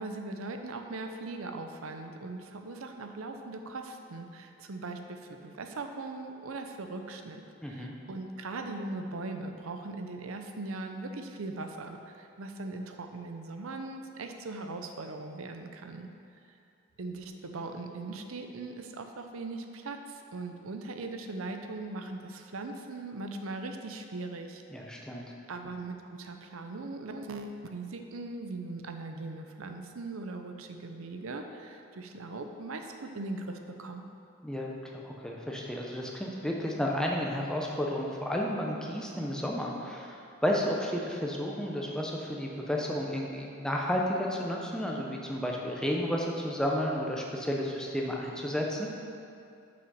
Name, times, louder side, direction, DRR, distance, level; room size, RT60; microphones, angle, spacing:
voice 1, 0.0-16.1 16.5-16.6 17.0-24.6 25.5-34.0, right 3 dB, 80° right, 5 dB, 0.6 m, -40 dB
voice 2, 7.6-7.9 24.7-25.3 34.4-48.9, equal, 5° left, -1 dB, 0.7 m, -32 dB
6.2 x 5.8 x 5.5 m, 2.5 s
head